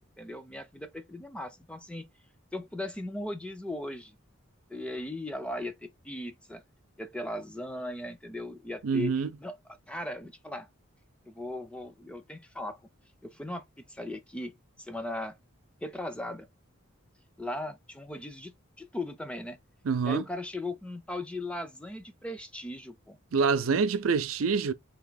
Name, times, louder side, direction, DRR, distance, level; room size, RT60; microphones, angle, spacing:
voice 1, 0.2-2.0 2.5-4.2 4.7-6.6 7.0-9.1 9.4-9.6 9.9-10.7 11.2-12.8 13.2-15.3 15.8-16.5 17.4-19.6 20.0-23.2, left 1 dB, 5° left, 0.5 m, -38 dB
voice 2, 8.8-9.3 19.8-20.2 23.3-24.7, right 5 dB, 75° right, 0.5 m, -26 dB
3.5 x 2.8 x 3.9 m
head